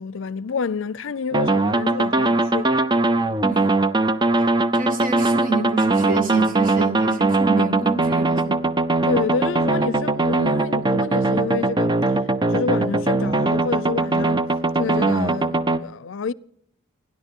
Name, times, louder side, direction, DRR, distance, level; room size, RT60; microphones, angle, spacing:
voice 1, 0.0-2.7 9.0-12.0 12.4-14.5 14.8-16.3, left 5 dB, 70° left, 0.5 m, -28 dB
sound 1, 1.3-15.8, right 2 dB, 20° right, 0.5 m, -20 dB
voice 2, 4.7-8.6, right 3 dB, 45° right, 2.2 m, -28 dB
29.0 x 10.5 x 3.7 m
head